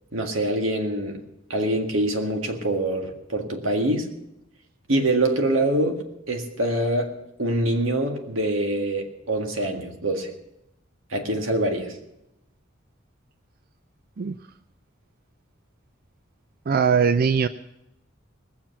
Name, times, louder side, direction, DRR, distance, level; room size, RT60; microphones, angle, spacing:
voice 1, 0.1-1.2 1.5-4.1 4.9-10.3 11.1-12.0, right 1 dB, 85° right, 1.9 m, -25 dB
voice 2, 16.7-17.5, right 6 dB, 50° right, 0.4 m, -20 dB
19.5 x 7.5 x 7.0 m
head